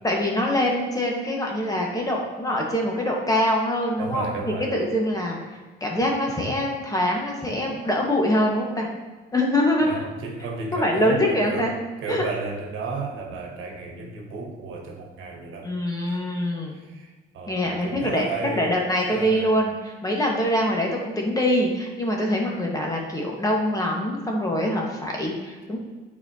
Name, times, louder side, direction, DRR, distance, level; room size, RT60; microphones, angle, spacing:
voice 1, 0.0-4.3 4.7-5.4 5.8-8.9 9.3-10.0 10.7-11.7 12.1-12.2 15.6-16.8 17.5-18.3 18.5-25.8, left 1 dB, 20° left, -1 dB, 1.5 m, -24 dB
voice 2, 4.0-4.7 9.8-11.8 12.0-15.7 16.1-16.2 16.7-18.8 19.1-19.5, right 4 dB, 85° right, 2 dB, 1.2 m, -33 dB
8.8 x 4.3 x 2.9 m, 1.3 s
cardioid pair, 90°, 20 cm